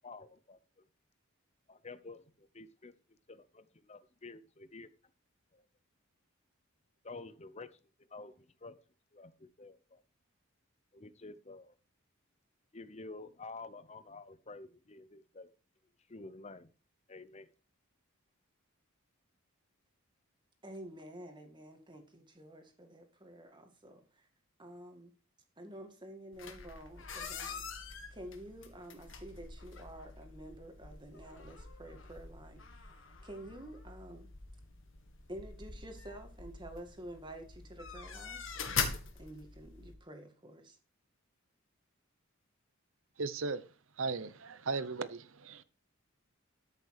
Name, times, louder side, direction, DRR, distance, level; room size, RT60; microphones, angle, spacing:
voice 1, 0.0-0.8 1.7-2.9 3.3-4.9 5.5-5.6 7.0-7.7 8.1-8.8 9.1-10.0 10.9-11.8 12.7-15.5 16.1-16.7 17.1-17.5, left 3 dB, 30° left, 0.8 m, -50 dB
voice 2, 20.6-24.3 24.6-25.1 25.6-27.7 28.1-32.9 33.2-34.3 35.3-38.5 39.1-40.8, right 1 dB, 20° right, 2.1 m, -49 dB
sound 1, 26.3-39.9, left 5 dB, 60° left, 1.9 m, -43 dB
voice 3, 43.2-43.7 44.0-45.6, right 4 dB, 65° right, 0.8 m, -37 dB
13.0 x 6.7 x 4.9 m
head